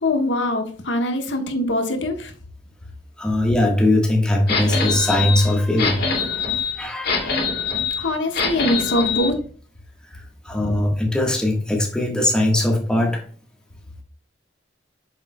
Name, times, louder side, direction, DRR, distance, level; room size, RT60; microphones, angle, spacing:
voice 1, 0.0-2.3 8.0-9.4, left 1 dB, 85° left, 1.3 m, -23 dB
voice 2, 3.2-6.1 6.8-7.4 10.4-13.2, left 1 dB, 5° left, 1.4 m, -20 dB
sound 1, 4.5-9.3, left 5 dB, 60° left, 2.3 m, -24 dB
7.8 x 7.0 x 2.2 m
head